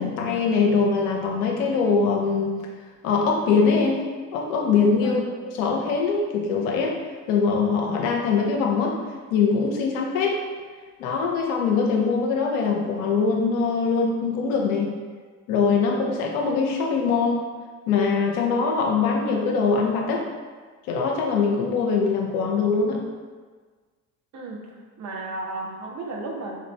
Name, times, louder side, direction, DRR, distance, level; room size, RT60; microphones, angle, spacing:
voice 1, 0.0-2.5 3.0-4.0 4.3-5.2 5.6-7.0 7.3-9.0 9.3-10.4 11.0-14.9 15.5-17.5 17.9-20.3 20.9-23.0, left 5 dB, 55° left, 0 dB, 0.7 m, -22 dB
voice 2, 24.3-26.7, right 2 dB, 35° right, 0 dB, 0.7 m, -34 dB
4.2 x 2.5 x 3.2 m, 1.5 s
figure-of-eight pair, 55°, 48 cm